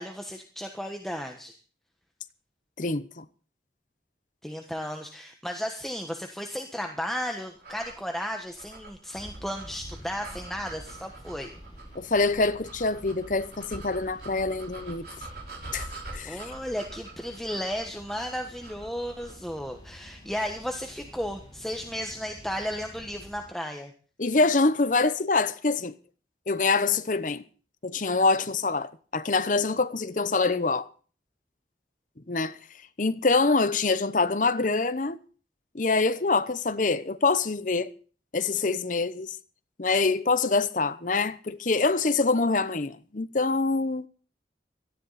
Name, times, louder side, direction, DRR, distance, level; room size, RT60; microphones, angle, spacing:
voice 1, 0.0-1.5 4.4-11.5 16.2-23.9, equal, ahead, 1.3 m, -34 dB
voice 2, 2.8-3.2 11.9-15.0 15.7-15.9 16.1-16.4 24.2-25.9 26.5-27.4 27.8-30.9 32.3-32.6 33.0-35.2 35.7-37.9 38.3-39.3 39.8-44.1, left 3 dB, 45° left, 0.9 m, -25 dB
sound 1, 7.6-19.5, right 2 dB, 55° right, 4.4 m, -45 dB
sound 2, 9.1-23.5, equal, 25° left, 6.3 m, -49 dB
18.0 x 14.0 x 4.2 m
head